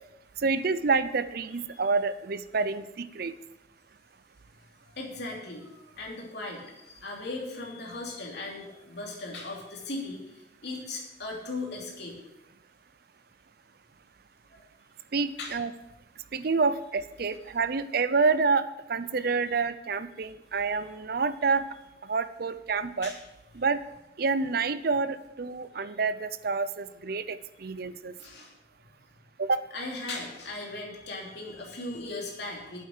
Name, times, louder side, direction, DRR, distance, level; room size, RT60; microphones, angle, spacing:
voice 1, 0.4-3.3 15.1-15.7 16.3-21.6 22.0-23.1 23.5-23.8 24.2-28.1 29.4-29.7, right 4 dB, 50° right, 14 dB, 0.5 m, -28 dB
voice 2, 5.0-12.2 14.5-14.6 15.4-15.6 19.2-19.3 23.0-23.2 28.2-28.5 29.7-32.9, left 2 dB, 60° left, -1 dB, 2.9 m, -38 dB
9.0 x 8.1 x 6.6 m, 0.93 s
head